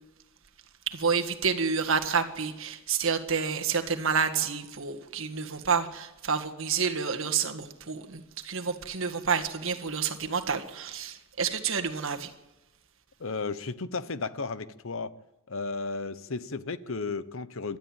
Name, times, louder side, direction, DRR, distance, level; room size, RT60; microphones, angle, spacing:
voice 1, 0.9-12.3, right 6 dB, 65° right, 1.8 m, -29 dB
voice 2, 13.2-15.1 15.5-17.8, left 4 dB, 65° left, 0.9 m, -34 dB
27.0 x 12.5 x 9.0 m
head